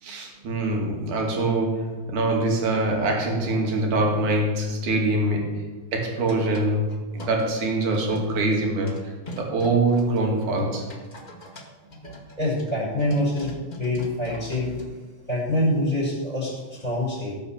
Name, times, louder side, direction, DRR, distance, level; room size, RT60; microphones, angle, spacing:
voice 1, 0.0-10.9, right 2 dB, 60° right, 0 dB, 3.8 m, -24 dB
sound 1, 6.2-7.5 7.9-8.5 8.8-15.0, equal, 35° left, 0.6 m, -42 dB
voice 2, 12.4-14.8 15.3-17.3, left 1 dB, 10° left, -6 dB, 5.8 m, -25 dB
18.0 x 7.1 x 7.3 m, 1.2 s
omnidirectional pair, 4.1 m